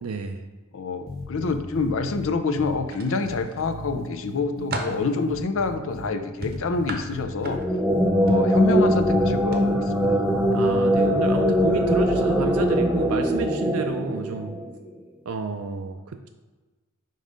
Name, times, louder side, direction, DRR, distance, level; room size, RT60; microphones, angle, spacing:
voice 1, 0.0-0.5 10.5-14.6 15.3-16.3, right 4 dB, 85° right, 5 dB, 0.5 m, -30 dB
voice 2, 0.7-7.6 8.2-10.2, left 3 dB, 65° left, 8 dB, 0.6 m, -27 dB
sound 1, 1.1-2.2 2.6-2.7 3.2-6.1 6.4-7.6 7.9-8.1 8.6-11.4, left 2 dB, 45° left, 1.0 m, -36 dB
sound 2, 2.9-3.7 4.2-5.1 6.4-7.9 8.3-8.6 9.4-9.6 10.0-10.2, right 2 dB, 45° right, 0.8 m, -34 dB
sound 3, 7.4-14.8, equal, 5° right, 0.6 m, -21 dB
5.3 x 3.9 x 5.1 m, 1.2 s
head